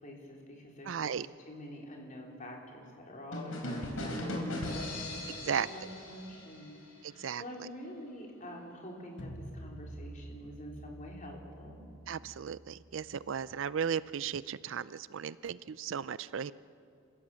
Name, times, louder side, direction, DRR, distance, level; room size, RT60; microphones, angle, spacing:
voice 1, 0.0-4.9 5.4-6.8 7.1-11.9, left 1 dB, 35° left, -1 dB, 3.7 m, -47 dB
voice 2, 0.8-1.3 5.4-5.9 7.0-7.7 12.1-16.5, right 7 dB, 60° right, 18 dB, 0.4 m, -36 dB
sound 1, 3.3-7.0, left 1 dB, 80° left, 4.1 m, -38 dB
sound 2, 9.2-14.2, right 1 dB, 60° left, 1.8 m, -49 dB
28.5 x 15.5 x 7.5 m, 2.5 s
head